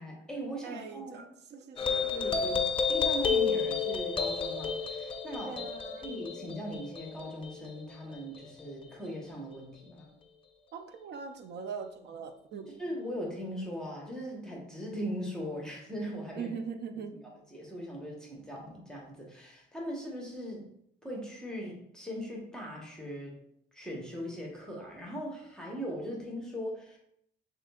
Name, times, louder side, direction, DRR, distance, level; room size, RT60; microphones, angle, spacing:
voice 1, 0.0-1.2 1.8-2.6 2.9-5.6 6.0-10.1 12.8-16.5 17.2-20.7 21.0-23.4 23.7-27.0, equal, 5° left, -3 dB, 1.1 m, -39 dB
voice 2, 0.6-2.4 5.5-6.1 10.7-12.7 16.4-17.1, right 6 dB, 60° right, 8 dB, 0.5 m, -41 dB
sound 1, 1.8-8.6, left 5 dB, 25° left, 0.4 m, -31 dB
6.2 x 2.7 x 2.4 m, 0.73 s
cardioid pair, 90°, 20 cm